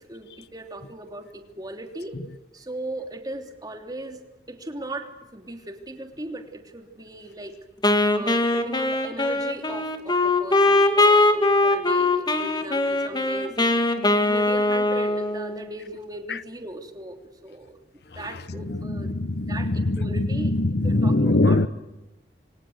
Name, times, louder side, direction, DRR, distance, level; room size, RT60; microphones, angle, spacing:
voice 1, 0.0-2.2 2.5-4.2 4.5-7.6 8.2-13.5 14.2-17.8 18.1-19.2 19.5-20.5 20.8-21.6, right 2 dB, 20° right, 3.1 m, -37 dB
Wind instrument woodwind instrument, 7.8-15.7, left 2 dB, 25° left, 2.1 m, -21 dB
voice 2, 18.6-21.7, left 2 dB, 60° left, 0.9 m, -22 dB
28.5 x 24.0 x 8.0 m
head